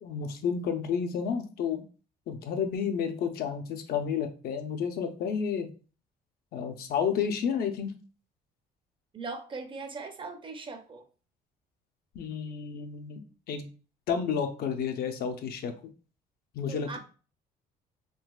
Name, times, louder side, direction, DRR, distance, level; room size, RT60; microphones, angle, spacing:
voice 1, 0.0-1.8 2.3-5.7 6.5-7.9 12.1-13.2 13.5-13.7 14.1-15.7 16.5-17.0, left 7 dB, 65° left, 6 dB, 0.6 m, -31 dB
voice 2, 9.1-11.1 16.7-17.0, right 4 dB, 30° right, 6 dB, 0.5 m, -39 dB
3.8 x 2.4 x 2.3 m, 0.36 s
cardioid pair, 110°, 17 cm